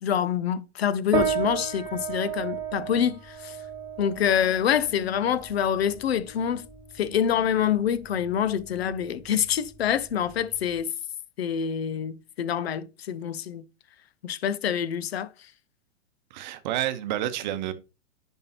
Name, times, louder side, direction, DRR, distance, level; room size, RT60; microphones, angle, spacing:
voice 1, 0.0-3.6 4.0-6.6 7.0-10.9 11.4-13.6 14.2-15.3, left 9 dB, 55° left, 0.7 m, -26 dB
sound 1, 1.1-10.8, right 6 dB, 10° right, 1.6 m, -34 dB
voice 2, 16.3-17.7, right 13 dB, 40° right, 0.9 m, -29 dB
10.0 x 3.6 x 2.9 m
figure-of-eight pair, 105°, 37 cm